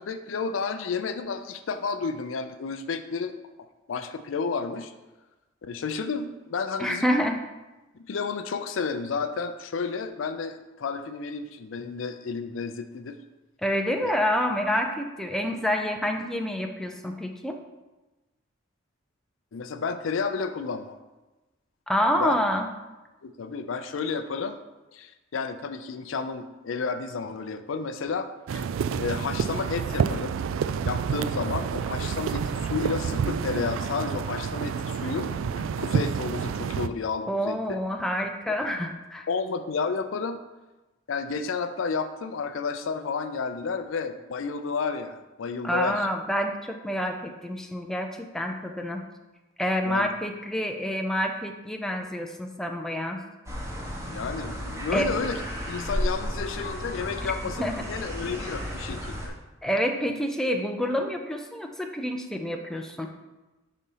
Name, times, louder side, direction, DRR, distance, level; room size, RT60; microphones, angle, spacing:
voice 1, 0.0-3.3 3.9-4.9 5.6-7.1 7.9-13.2 14.0-14.1 19.5-21.0 22.2-22.4 23.2-24.6 24.9-28.7 29.0-30.3 30.8-37.8 39.3-40.4 41.1-46.1 49.8-50.1 54.1-55.4 55.7-59.3, left 5 dB, 70° left, 9 dB, 0.4 m, -31 dB
voice 2, 6.8-7.4 13.6-17.6 21.9-22.7 37.3-39.3 45.6-49.0 49.6-53.2 54.9-55.1 57.2-57.3 57.6-57.8 59.6-63.1, equal, 5° left, 3 dB, 0.5 m, -28 dB
sound 1, 28.5-36.9, right 6 dB, 75° right, 0.3 m, -29 dB
sound 2, 53.5-59.3, equal, 15° right, 1.1 m, -33 dB
5.1 x 4.2 x 5.5 m, 1.1 s
head